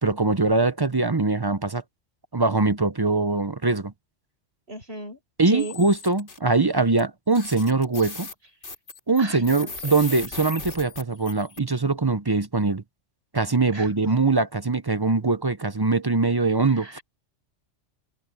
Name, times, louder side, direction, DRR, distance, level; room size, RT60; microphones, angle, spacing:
voice 1, 0.0-1.8 2.3-3.9 5.4-8.3 9.1-12.8 13.3-17.0, right 3 dB, 25° right, 0.6 m, -22 dB
voice 2, 4.7-5.2 5.5-5.8 9.2-10.0 13.7-13.9 16.7-17.0, right 2 dB, 55° right, 6.1 m, -36 dB
sound 1, 5.6-6.4 7.0-7.1 7.3-11.6, left 3 dB, 70° left, 3.0 m, -37 dB
open air
omnidirectional pair, 1.2 m